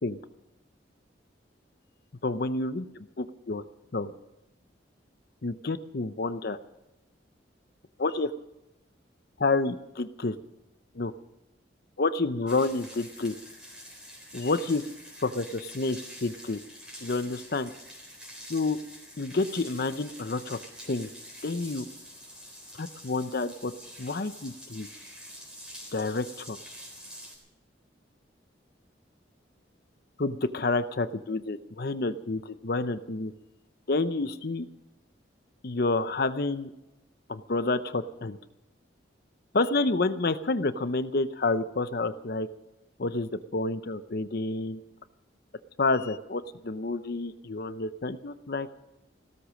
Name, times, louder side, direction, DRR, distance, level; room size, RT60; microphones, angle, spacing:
voice 1, 2.2-3.6 3.9-4.1 5.4-6.6 8.0-8.3 9.4-10.3 10.9-11.1 12.0-13.4 14.3-14.8 15.2-16.6 17.0-17.7 18.5-18.8 19.2-20.6 20.9-21.1 21.4-21.8 22.8-23.7 24.0-24.9 25.9-26.6 30.2-33.3 33.9-34.7 35.6-36.7 37.3-38.4 39.5-42.5 43.0-44.8 45.8-48.7, left 3 dB, 55° left, 12 dB, 0.7 m, -29 dB
sound 1, 12.5-27.4, equal, 5° right, 3.7 m, -46 dB
16.5 x 13.5 x 6.4 m, 0.92 s
head